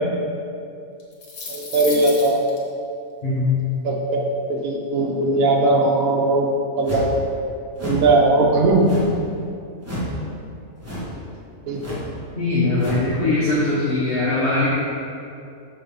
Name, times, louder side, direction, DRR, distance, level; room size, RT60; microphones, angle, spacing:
sound 1, 1.0-2.6, left 4 dB, 75° left, 1.7 m, -33 dB
voice 1, 1.5-2.4 3.8-4.2 4.5-7.1 7.8-9.0 11.7-12.0, right 2 dB, 75° right, -1 dB, 1.1 m, -19 dB
voice 2, 3.2-3.5 12.3-14.7, left 2 dB, 45° left, -8 dB, 1.4 m, -21 dB
sound 2, 6.8-7.2 7.7-8.1 8.8-9.2 9.8-10.2 10.8-11.2 11.8-12.1 12.8-13.1, equal, 10° right, 1.5 m, -29 dB
6.8 x 4.1 x 5.4 m, 2.5 s
omnidirectional pair, 1.5 m